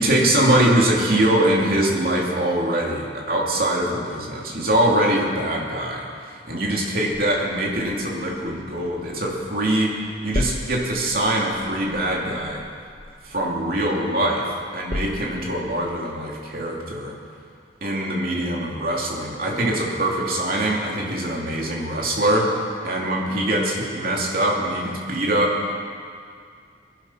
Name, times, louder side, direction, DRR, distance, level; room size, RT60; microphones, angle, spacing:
voice 1, 0.0-9.9 10.2-12.6 13.2-17.1 17.8-22.6 22.8-25.6, right 1 dB, 55° right, -2 dB, 2.8 m, -23 dB
sound 1, 7.1-9.7 10.0-14.2 14.6-15.9, left 1 dB, 35° left, 0.8 m, -35 dB
21.5 x 11.0 x 5.8 m, 2.2 s
head